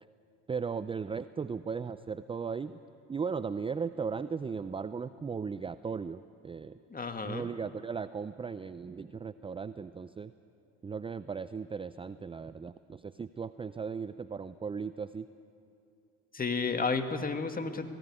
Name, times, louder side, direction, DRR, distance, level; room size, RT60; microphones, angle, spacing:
voice 1, 0.5-2.8 3.1-6.8 7.2-10.3 10.8-15.3, right 5 dB, 15° right, 14 dB, 0.5 m, -37 dB
voice 2, 6.9-7.5 16.3-17.9, left 4 dB, 25° left, 6 dB, 1.9 m, -32 dB
18.5 x 16.0 x 9.7 m, 2.5 s
hypercardioid pair, 70°, 36 cm